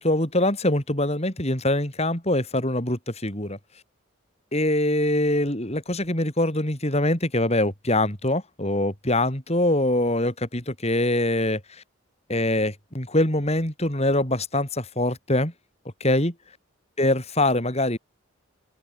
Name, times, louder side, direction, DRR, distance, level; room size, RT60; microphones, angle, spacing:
voice 1, 0.0-3.6 4.5-11.8 12.3-15.5 16.0-16.3 17.0-18.0, left 1 dB, 30° left, 5.1 m, -24 dB
open air
head